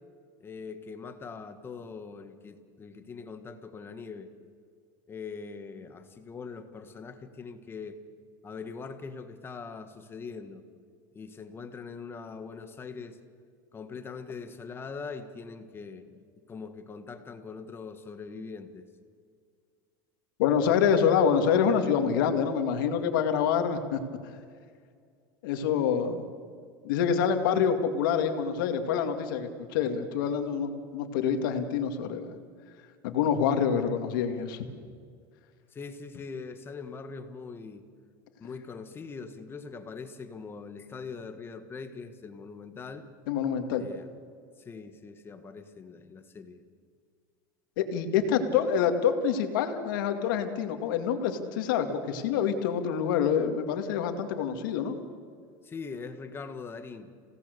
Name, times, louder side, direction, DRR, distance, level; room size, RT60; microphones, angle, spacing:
voice 1, 0.4-4.3 5.1-8.0 8.4-10.6 11.1-13.2 13.7-16.1 16.5-18.9 35.7-37.9 38.4-43.1 43.8-44.1 44.6-46.6 55.6-57.1, left 5 dB, 20° left, 9 dB, 1.5 m, -42 dB
voice 2, 20.4-24.0 25.4-26.3 26.8-32.4 33.0-34.7 43.3-43.8 47.8-55.0, left 7 dB, 80° left, 6 dB, 2.3 m, -26 dB
28.0 x 17.5 x 6.8 m, 2.1 s
supercardioid pair, 140°, 11 cm